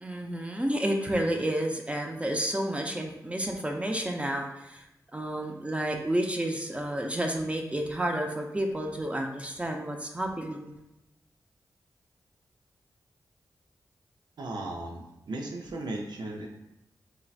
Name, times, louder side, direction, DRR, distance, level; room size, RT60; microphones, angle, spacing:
voice 1, 0.0-4.8 5.1-10.7, right 1 dB, 15° right, 2 dB, 0.5 m, -30 dB
voice 2, 14.4-16.5, right 2 dB, 75° right, 1 dB, 0.6 m, -36 dB
3.8 x 2.1 x 2.4 m, 0.90 s
cardioid pair, 50°, 7 cm